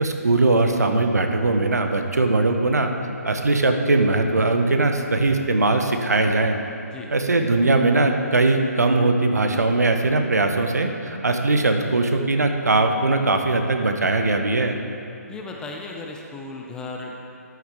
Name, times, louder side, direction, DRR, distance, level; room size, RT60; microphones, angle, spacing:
voice 1, 0.0-2.9 3.2-6.6 7.1-14.8, right 2 dB, 75° right, 5 dB, 0.8 m, -20 dB
voice 2, 15.3-17.2, left 3 dB, 10° left, 0 dB, 0.5 m, -35 dB
12.5 x 5.9 x 3.5 m, 2.8 s
figure-of-eight pair, 140°, 9 cm